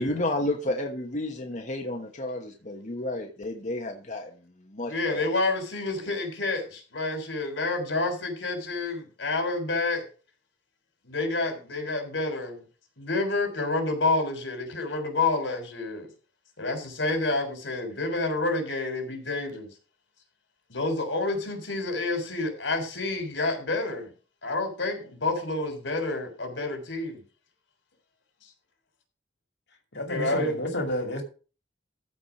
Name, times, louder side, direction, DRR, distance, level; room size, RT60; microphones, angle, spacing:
voice 1, 0.0-4.3 4.7-5.2, left 1 dB, 40° left, 1.2 m, -31 dB
voice 2, 4.8-10.1 11.0-12.6 13.0-16.1 16.6-19.7 20.7-24.1 24.4-27.2 28.4-28.5 30.1-30.6, left 2 dB, 90° left, 3.7 m, -29 dB
voice 3, 29.9-31.2, left 1 dB, 70° left, 2.5 m, -30 dB
14.5 x 4.9 x 6.0 m
head